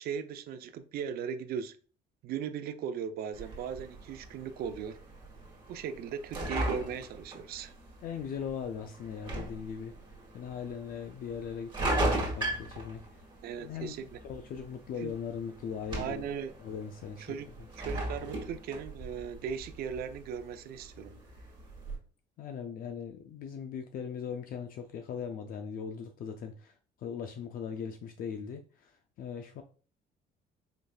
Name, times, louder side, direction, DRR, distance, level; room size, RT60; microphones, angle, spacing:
voice 1, 0.0-1.7 2.2-5.0 5.7-7.7 13.4-14.2 15.0-15.1 16.0-16.6 17.2-17.5 17.8-21.2, right 7 dB, 65° right, 0.5 m, -38 dB
sound 1, 3.3-22.0, right 1 dB, 30° right, 1.8 m, -39 dB
voice 2, 8.0-9.9 10.3-13.0 13.6-16.2 16.6-17.4 22.4-26.7 27.0-28.9 29.2-29.6, left 7 dB, 60° left, 0.5 m, -39 dB
5.1 x 3.1 x 2.3 m
cardioid pair, 110°, 17 cm